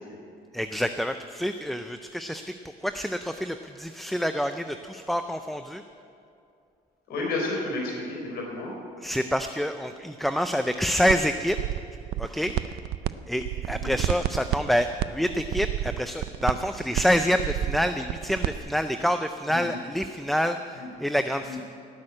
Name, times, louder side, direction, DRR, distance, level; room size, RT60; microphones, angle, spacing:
voice 1, 0.5-2.5 2.8-5.8 9.0-11.6 12.2-12.8 13.3-21.6, equal, ahead, 8 dB, 0.4 m, -27 dB
voice 2, 7.1-8.7 13.8-13.9 19.5-19.8 20.7-20.9 21.4-21.6, left 2 dB, 70° left, -2 dB, 4.2 m, -32 dB
sound 1, 11.1-11.2 11.5-13.1 13.4-18.6, right 14 dB, 75° right, 0.5 m, -29 dB
18.5 x 6.3 x 8.7 m, 2.5 s
cardioid pair, 110°, 17 cm